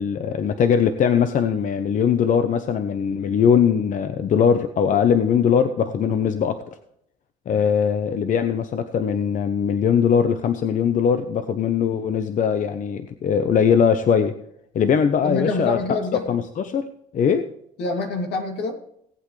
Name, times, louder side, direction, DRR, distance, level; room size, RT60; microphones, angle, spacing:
voice 1, 0.0-6.6 7.5-14.3 14.7-15.8 16.3-16.9 17.1-17.4, left 7 dB, 50° left, 9 dB, 0.9 m, -20 dB
voice 2, 15.2-16.2 17.8-18.8, left 3 dB, 80° left, 2 dB, 2.9 m, -26 dB
18.5 x 8.3 x 3.3 m, 0.74 s
cardioid pair, 110°, 17 cm